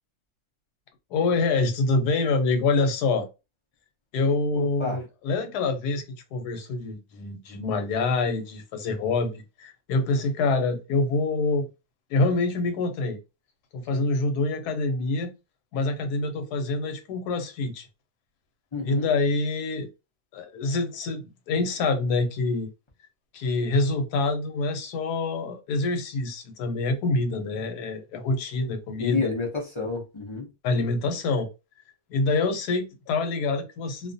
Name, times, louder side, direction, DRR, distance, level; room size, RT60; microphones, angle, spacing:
voice 1, 1.1-3.3 4.1-6.0 6.3-9.3 9.6-11.7 12.1-13.2 13.7-15.3 15.7-17.9 18.8-19.9 20.3-22.7 23.3-29.3 30.6-31.5 32.1-34.1, left 3 dB, 90° left, 1.2 m, -26 dB
voice 2, 4.5-5.0 18.7-19.1 29.0-30.5, left 4 dB, 40° left, 0.4 m, -29 dB
2.6 x 2.3 x 2.5 m
omnidirectional pair, 1.6 m